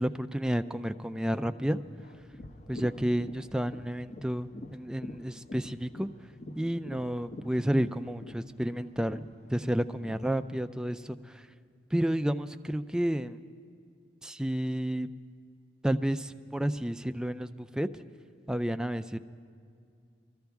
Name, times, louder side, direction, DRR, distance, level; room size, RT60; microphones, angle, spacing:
voice 1, 0.0-1.8 2.7-6.1 6.6-9.2 9.5-11.5 11.9-13.4 14.2-15.1 15.8-18.0 18.5-19.2, equal, 5° right, 10 dB, 0.3 m, -31 dB
sound 1, 1.7-10.6, left 1 dB, 40° left, 0.7 m, -46 dB
22.5 x 14.0 x 3.5 m, 2.3 s
head